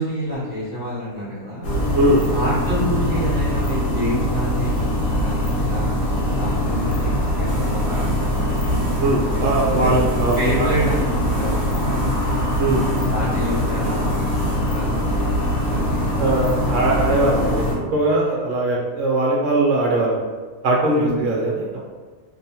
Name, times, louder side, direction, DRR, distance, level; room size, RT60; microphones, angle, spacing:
voice 1, 0.0-1.7 2.3-8.7 9.3-10.0 10.4-12.3 13.1-16.6 20.9-21.2, equal, 50° left, -11 dB, 0.5 m, -29 dB
sound 1, 1.6-17.8, left 1 dB, 70° left, 1.1 m, -22 dB
voice 2, 1.9-2.2 9.0-10.7 12.6-13.0 16.2-17.6 17.9-20.2 20.6-21.8, right 2 dB, 70° right, -2 dB, 0.8 m, -20 dB
sound 2, 7.5-14.6, right 3 dB, 90° right, 0.4 m, -38 dB
2.7 x 2.0 x 2.8 m, 1.4 s
omnidirectional pair, 1.5 m